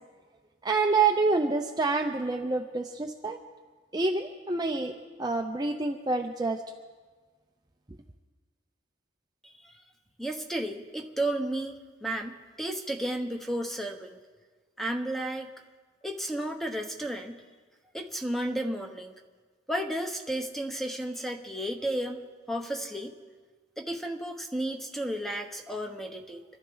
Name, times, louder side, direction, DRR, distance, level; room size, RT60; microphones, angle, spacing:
voice 1, 0.6-3.4 3.9-4.9 5.2-6.6, right 3 dB, 20° right, 2 dB, 0.6 m, -27 dB
voice 2, 10.2-14.2 14.8-15.5 16.0-17.4 17.9-19.1 19.7-22.2 22.5-23.1 23.8-26.4, right 1 dB, ahead, 3 dB, 1.1 m, -33 dB
27.0 x 12.5 x 4.0 m, 1.4 s
head